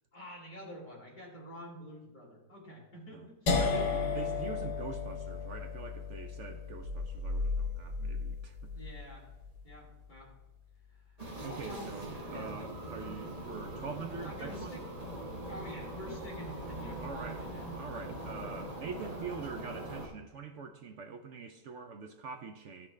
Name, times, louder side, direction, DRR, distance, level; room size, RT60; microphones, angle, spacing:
voice 1, 0.1-3.6 8.7-9.3 9.6-10.3 10.9-11.2 11.5-12.7 14.2-14.8 15.3-17.7, equal, 30° left, -4 dB, 2.4 m, -48 dB
sound 1, 3.5-9.4, left 4 dB, 75° left, 1.7 m, -35 dB
voice 2, 3.6-8.6 11.4-14.8 17.0-17.4 17.7-22.9, right 5 dB, 65° right, 6 dB, 0.7 m, -44 dB
sound 2, 6.8-9.7, left 3 dB, 85° right, 1.4 m, -37 dB
sound 3, 11.2-20.1, right 1 dB, 25° right, 1.2 m, -42 dB
13.0 x 6.0 x 3.2 m, 1.0 s
omnidirectional pair, 1.7 m